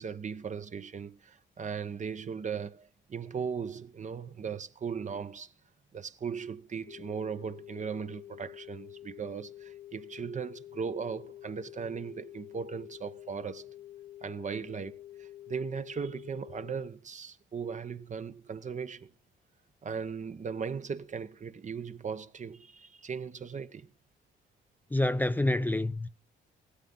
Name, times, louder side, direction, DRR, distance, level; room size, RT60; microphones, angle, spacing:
voice 1, 0.0-5.5 5.9-13.7 14.2-14.9 15.2-19.1 19.8-23.9, right 6 dB, 40° right, 0.9 m, -38 dB
sound 1, 6.9-16.9, left 13 dB, 85° left, 2.0 m, -48 dB
voice 2, 24.9-26.1, left 1 dB, 10° left, 0.6 m, -27 dB
17.0 x 13.5 x 3.9 m
cardioid pair, 90°, 20 cm